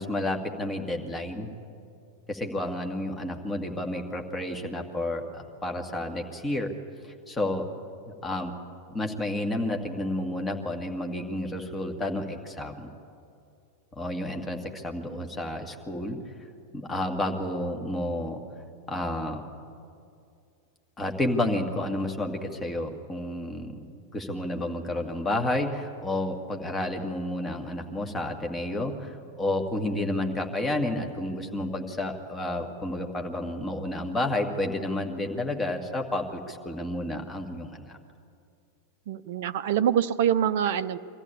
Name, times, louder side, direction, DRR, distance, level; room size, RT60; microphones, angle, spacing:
voice 1, 0.0-1.5 2.3-6.7 7.0-7.6 8.2-8.5 8.9-12.9 14.0-16.2 16.7-18.4 18.9-19.4 21.0-38.0, left 1 dB, 15° left, 3 dB, 2.0 m, -31 dB
voice 2, 39.1-41.0, right 9 dB, 55° right, 12 dB, 0.6 m, -25 dB
24.0 x 14.0 x 8.5 m, 2.5 s
figure-of-eight pair, 90°, 0 cm